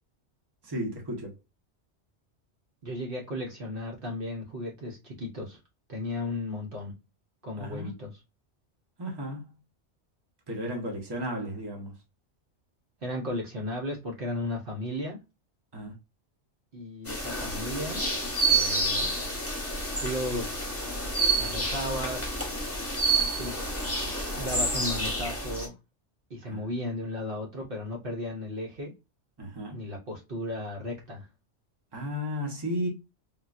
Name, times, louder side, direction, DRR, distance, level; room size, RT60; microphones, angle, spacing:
voice 1, 0.6-1.3 7.6-7.9 9.0-9.5 10.5-11.9 15.7-15.9 26.5-26.7 29.4-29.8 31.9-32.9, equal, 25° right, 0.9 m, -34 dB
voice 2, 2.8-5.6 5.9-6.9 7.4-8.1 13.0-15.2 16.7-18.1 18.5-19.1 20.0-20.7 21.4-22.4 23.4-23.8 24.4-25.7 26.3-28.9 29.7-31.3, left 1 dB, 55° right, 0.9 m, -35 dB
sound 1, 17.1-25.7, right 2 dB, 15° left, 1.0 m, -29 dB
3.6 x 2.3 x 2.4 m
omnidirectional pair, 1.2 m